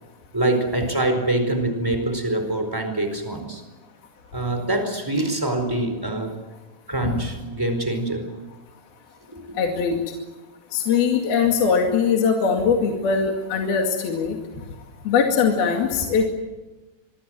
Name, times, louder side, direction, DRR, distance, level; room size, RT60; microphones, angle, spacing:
voice 1, 0.3-3.6 4.3-6.3 6.9-8.3 9.3-9.6, right 1 dB, 5° right, 7 dB, 3.9 m, -24 dB
voice 2, 9.6-10.0 10.7-14.4 15.1-16.3, left 6 dB, 55° left, 1 dB, 3.8 m, -21 dB
26.5 x 23.0 x 7.7 m, 1.1 s
omnidirectional pair, 5.7 m